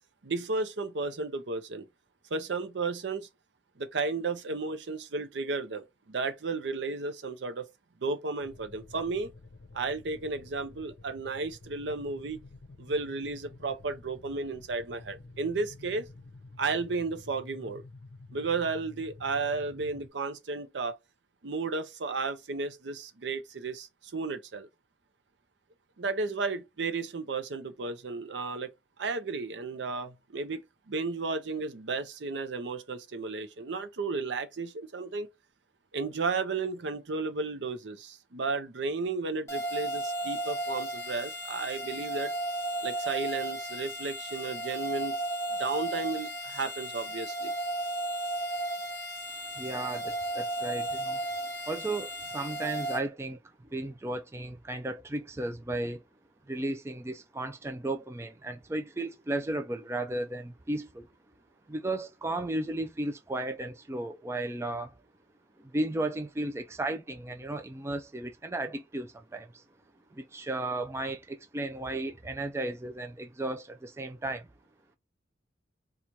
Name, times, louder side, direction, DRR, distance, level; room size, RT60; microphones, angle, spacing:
voice 1, 0.2-1.9 2.3-3.3 3.8-7.7 8.0-9.3 9.7-12.4 12.8-16.1 16.6-17.8 18.3-21.0 21.4-24.7 26.0-28.7 29.0-35.3 35.9-42.3 42.8-45.2 45.6-47.5, right 3 dB, 75° right, 0.6 m, -33 dB
sound 1, 8.4-20.1, left 2 dB, 65° left, 0.6 m, -50 dB
sound 2, 39.5-53.0, right 1 dB, 15° left, 1.0 m, -34 dB
voice 2, 49.6-51.2 51.7-53.4 53.7-56.0 56.5-61.1 61.7-64.9 65.6-69.6 70.1-74.5, right 2 dB, 15° right, 0.3 m, -34 dB
4.5 x 2.3 x 2.6 m
head